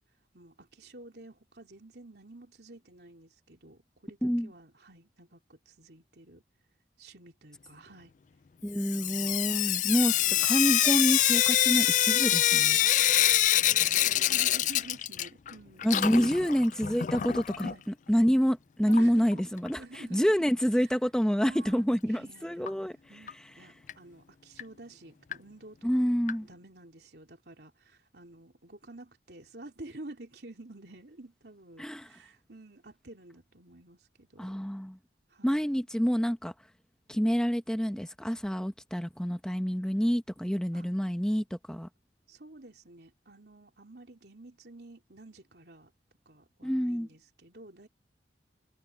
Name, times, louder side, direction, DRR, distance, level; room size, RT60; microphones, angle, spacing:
voice 1, 0.3-6.4 7.0-8.1 8.6-9.4 9.7-10.5 12.8-13.1 13.4-16.6 17.6-17.8 18.9-19.5 19.7-20.5 20.8-20.9 21.4-22.7 23.1-26.1 26.4-34.6 35.3-35.9 40.7-40.9 42.3-45.9 46.2-47.9, right 2 dB, 65° right, 3.3 m, -50 dB
voice 2, 4.2-4.5 8.6-10.1 10.4-12.8 15.8-17.7 18.1-23.0 25.8-26.5 31.8-32.1 34.4-35.0 35.4-36.5 37.1-41.9 46.6-47.1, equal, 5° left, 0.9 m, -27 dB
Sink (filling or washing) / Drip, 8.8-15.5 15.8-17.7 18.9-19.0 19.3-19.4 19.7-19.8 22.7-22.8 23.3-23.4 23.9-24.0 24.6-24.7 25.3-25.4 26.3-26.4, left 13 dB, 45° left, 0.3 m, -25 dB
head